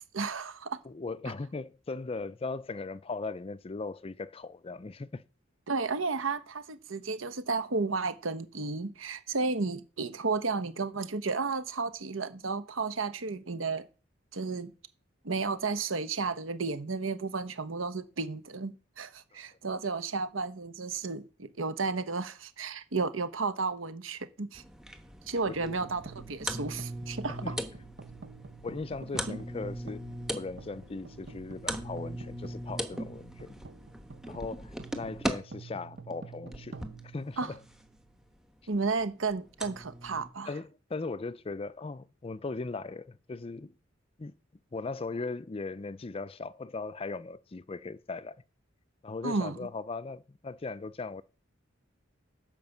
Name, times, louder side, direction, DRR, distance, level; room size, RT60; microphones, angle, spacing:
voice 1, 0.1-0.8 5.7-13.9 14.3-14.7 15.2-24.6 25.3-27.5 29.3-29.4 37.4-37.5 38.7-40.5 49.2-49.6, right 4 dB, 85° right, 1.0 m, -33 dB
voice 2, 0.8-5.3 25.6-25.8 27.3-27.5 28.6-30.0 30.3-33.6 34.2-36.8 37.0-37.6 40.5-43.7 44.2-44.3 44.7-48.4 49.0-51.2, left 3 dB, 30° left, 0.4 m, -38 dB
sound 1, 24.5-35.3 36.1-37.0 38.2-38.3 38.7-38.8 39.6-40.3, equal, 5° right, 1.1 m, -39 dB
sound 2, 25.6-38.0, right 4 dB, 60° right, 0.9 m, -49 dB
10.5 x 5.1 x 7.1 m
head